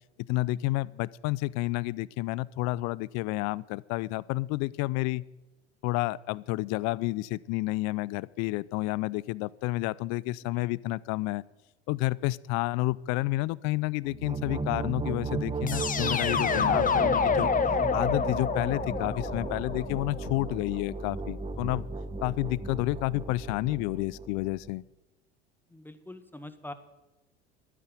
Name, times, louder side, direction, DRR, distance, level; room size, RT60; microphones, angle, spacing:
voice 1, 0.3-5.2 5.8-11.4 11.9-17.5 17.9-21.9 22.2-24.8, left 19 dB, 55° left, 23 dB, 0.6 m, -30 dB
sound 1, 14.0-24.7, right 4 dB, 15° right, 1.1 m, -35 dB
sound 2, 15.7-20.6, left 6 dB, 25° left, 1.2 m, -28 dB
voice 2, 25.7-26.7, left 1 dB, 5° left, 10 dB, 1.5 m, -44 dB
12.5 x 9.7 x 9.2 m, 1.0 s
hypercardioid pair, 75°, 33 cm